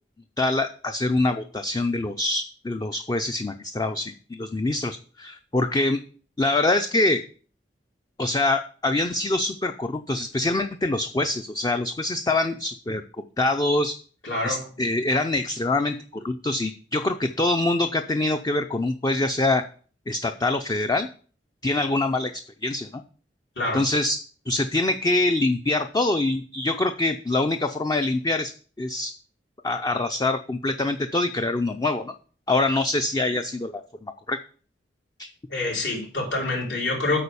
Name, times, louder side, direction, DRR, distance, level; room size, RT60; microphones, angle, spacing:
voice 1, 0.4-6.0 6.4-7.2 8.2-13.0 13.4-14.0 14.4-19.6 20.1-21.1 21.6-23.0 23.7-24.2 24.5-29.1 29.6-32.1 32.5-34.4 35.2-35.3, left 2 dB, 20° left, 7 dB, 0.4 m, -25 dB
voice 2, 14.2-14.6 23.6-23.9 35.5-37.2, left 2 dB, 70° left, -3 dB, 4.0 m, -26 dB
8.5 x 4.7 x 6.8 m, 0.42 s
head